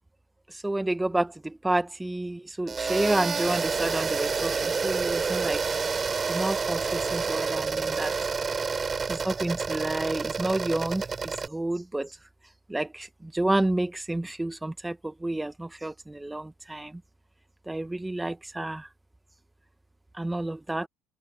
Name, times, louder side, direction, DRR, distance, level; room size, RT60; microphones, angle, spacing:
voice 1, 0.6-1.3 1.6-4.5 4.8-5.6 6.3-8.1 9.1-11.0 11.5-12.1 12.7-13.1 13.3-14.9 15.2-15.5 15.8-15.9 16.2-16.4 16.7-16.9 17.7-18.8 20.2-20.9, right 1 dB, 10° right, 0.8 m, -29 dB
sound 1, 2.7-11.5, right 5 dB, 30° right, 2.6 m, -29 dB
open air
supercardioid pair, 95°, 0 cm